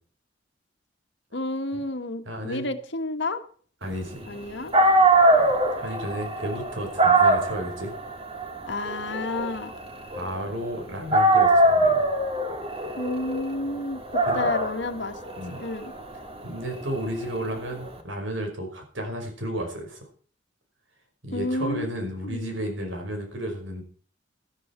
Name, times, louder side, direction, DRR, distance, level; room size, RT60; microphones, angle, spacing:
voice 1, 1.3-3.4 4.3-4.7 8.7-9.7 13.0-15.2 15.5-15.9 21.3-21.9 22.2-22.5, left 2 dB, 65° left, 8 dB, 1.6 m, -30 dB
voice 2, 2.3-2.7 3.8-4.4 5.4-7.9 10.1-12.0 14.3-14.5 15.4-15.6 16.4-20.1 21.2-23.8, equal, 80° right, 4 dB, 5.2 m, -33 dB
Dog, 4.4-4.5 4.7-10.7 11.1-17.9, right 2 dB, 30° right, 2.5 m, -23 dB
13.5 x 13.0 x 4.5 m, 0.43 s
head